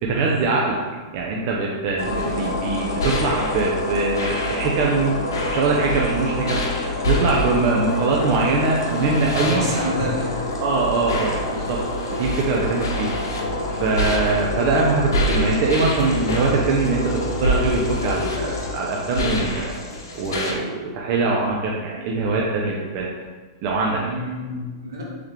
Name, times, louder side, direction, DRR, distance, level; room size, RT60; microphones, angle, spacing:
voice 1, 0.0-0.8 1.1-5.2 5.5-6.6 7.1-9.6 10.6-11.8 12.1-13.1 13.7-19.7 20.1-23.1 23.6-24.1, right 3 dB, 50° right, -2 dB, 0.6 m, -22 dB
sound 1, 2.0-20.5, left 1 dB, 85° left, 0.8 m, -26 dB
voice 2, 9.4-10.4 24.0-25.0, equal, 80° right, -3 dB, 1.3 m, -28 dB
3.5 x 3.2 x 3.4 m, 1.3 s
hypercardioid pair, 125°, 2 cm